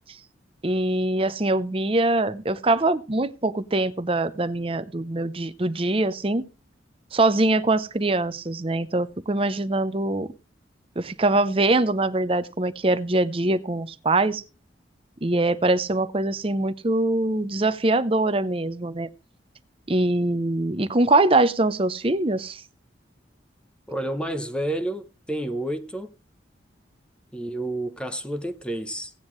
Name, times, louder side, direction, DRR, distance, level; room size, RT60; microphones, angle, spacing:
voice 1, 0.6-6.4 7.1-10.3 11.0-14.4 15.2-19.1 19.9-22.6, right 2 dB, 30° right, 0.7 m, -23 dB
voice 2, 23.9-26.1 27.3-29.1, right 1 dB, 5° left, 0.7 m, -30 dB
17.0 x 9.3 x 3.2 m
head